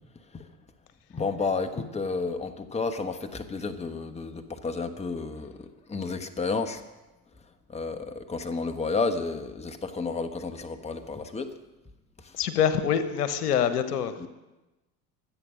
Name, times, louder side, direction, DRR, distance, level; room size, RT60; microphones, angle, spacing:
voice 1, 1.1-6.8 7.7-11.5 12.2-12.3 14.2-14.3, left 4 dB, 15° left, 8 dB, 1.3 m, -31 dB
voice 2, 12.3-14.3, left 8 dB, 70° left, 11 dB, 1.3 m, -25 dB
24.5 x 8.7 x 6.3 m, 1.0 s
figure-of-eight pair, 70°, 48 cm